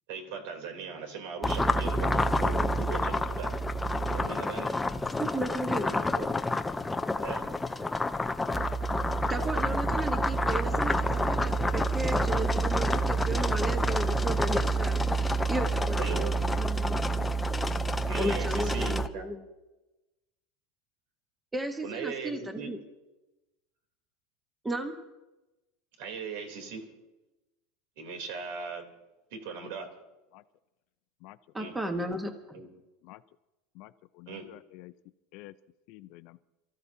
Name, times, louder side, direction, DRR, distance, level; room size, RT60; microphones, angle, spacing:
voice 1, 0.1-3.6 4.1-4.8 5.7-6.3 7.2-7.5 13.1-13.5 16.0-16.3 18.1-19.3 21.8-22.7 26.0-26.9 28.0-28.8 29.3-29.9 31.6-31.7 32.5-32.7 34.3-34.5, right 5 dB, 70° right, 4 dB, 3.2 m, -39 dB
sound 1, 1.4-19.1, right 1 dB, 5° left, 0.5 m, -28 dB
voice 2, 5.2-5.9 9.3-15.0 15.5-17.0 18.2-19.4 21.5-22.8 24.6-24.9 31.5-32.3, right 1 dB, 10° right, 5 dB, 1.2 m, -34 dB
voice 3, 33.7-34.9 35.3-35.5 35.9-36.4, left 18 dB, 50° left, 13 dB, 0.6 m, -49 dB
28.5 x 14.0 x 2.8 m, 1.0 s
supercardioid pair, 160°, 0 cm